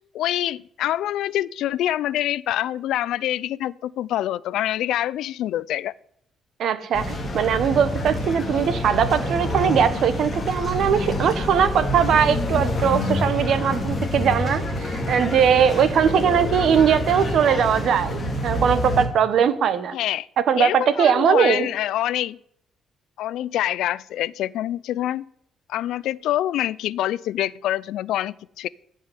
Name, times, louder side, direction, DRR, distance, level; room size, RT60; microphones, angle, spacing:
voice 1, 0.1-5.9 19.9-20.3 20.6-22.4 23.2-25.3 25.7-28.7, left 13 dB, 75° left, 21 dB, 0.4 m, -26 dB
voice 2, 6.6-19.9 20.4-21.7, right 8 dB, 50° right, 13 dB, 1.2 m, -20 dB
sound 1, 6.9-19.1, left 1 dB, 20° left, 2.1 m, -27 dB
15.5 x 5.5 x 9.7 m, 0.73 s
cardioid pair, 180°, 0 cm